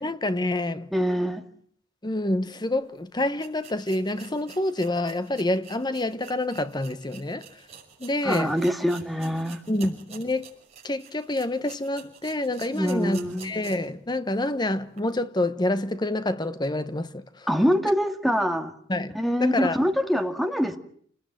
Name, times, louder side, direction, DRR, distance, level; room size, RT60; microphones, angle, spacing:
voice 1, 0.0-0.9 2.0-7.5 8.0-8.5 9.7-10.5 10.8-17.2 18.9-19.8, left 1 dB, 20° left, 1.1 m, -27 dB
voice 2, 0.9-1.4 8.2-9.6 12.7-13.5 17.5-18.7 19.1-20.8, equal, ahead, 2.1 m, -24 dB
sound 1, 2.8-2.9 3.4-14.0 14.3-14.4 14.9-15.0, right 7 dB, 35° right, 6.0 m, -48 dB
28.5 x 19.5 x 9.1 m
head